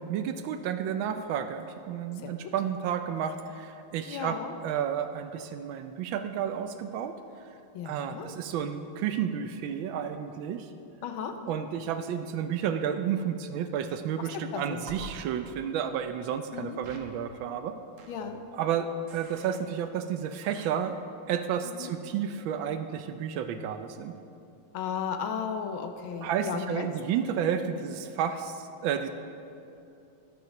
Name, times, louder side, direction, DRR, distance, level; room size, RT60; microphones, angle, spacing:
voice 1, 0.0-7.1 7.8-10.7 11.5-17.8 18.5-21.0 21.3-24.1 26.2-29.1, right 8 dB, 75° right, 8 dB, 1.2 m, -31 dB
voice 2, 4.1-4.5 7.7-8.3 11.0-11.4 14.2-14.8 16.5-16.8 18.1-18.4 21.6-21.9 24.7-26.9 27.6-27.8, left 7 dB, 75° left, 6 dB, 1.5 m, -35 dB
sound 1, 14.9-15.1 16.8-17.0 18.0-18.3 19.1-19.6 20.4-20.7, right 3 dB, 50° right, 1.0 m, -46 dB
12.0 x 6.4 x 5.8 m, 2.7 s
omnidirectional pair, 2.4 m